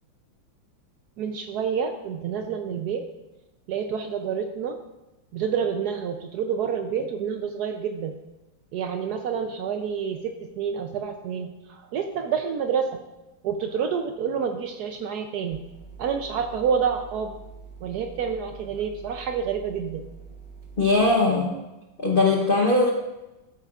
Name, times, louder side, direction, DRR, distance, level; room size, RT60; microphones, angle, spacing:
voice 1, 1.2-3.0 3.7-4.8 5.3-8.1 8.7-13.0 13.4-15.6 16.0-17.3 17.8-20.0, right 7 dB, 85° right, 5 dB, 0.8 m, -28 dB
sound 1, 15.5-20.9, right 5 dB, 55° right, 1.9 m, -45 dB
voice 2, 20.8-21.6 22.0-22.9, left 3 dB, 90° left, 0 dB, 0.4 m, -20 dB
13.0 x 8.8 x 2.4 m, 1.0 s
omnidirectional pair, 2.4 m